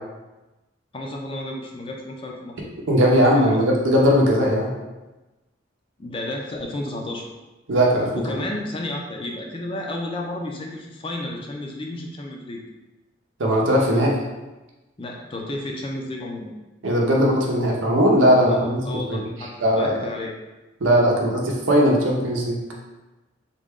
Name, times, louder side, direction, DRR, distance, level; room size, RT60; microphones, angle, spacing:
voice 1, 0.9-2.7 3.2-3.6 6.0-7.3 8.1-12.6 15.0-16.5 18.5-20.3, left 1 dB, 25° left, 0 dB, 0.4 m, -32 dB
voice 2, 2.9-4.7 7.7-8.2 13.4-14.2 16.8-19.2 19.6-19.9 20.8-22.6, equal, 75° right, -1 dB, 0.7 m, -19 dB
3.6 x 2.2 x 3.6 m, 1.1 s
head